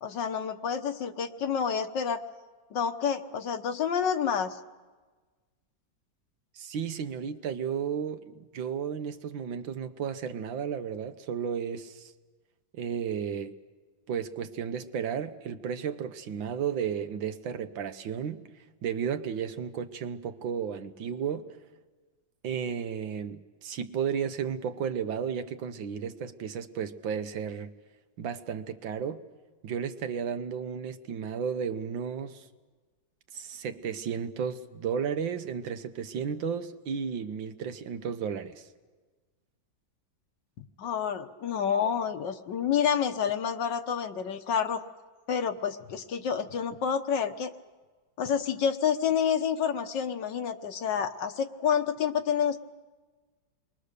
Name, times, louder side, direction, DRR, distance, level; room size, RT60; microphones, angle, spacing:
voice 1, 0.0-2.2 2.7-4.6 40.6-44.8 45.3-47.5 48.2-52.6, left 7 dB, 70° left, 8 dB, 1.6 m, -29 dB
voice 2, 6.6-12.1 12.7-13.5 14.1-18.4 18.8-21.5 22.4-27.7 28.2-29.2 29.6-32.5 33.3-38.7, right 7 dB, 75° right, 8 dB, 1.8 m, -33 dB
29.0 x 22.0 x 6.7 m, 1.3 s
omnidirectional pair, 2.1 m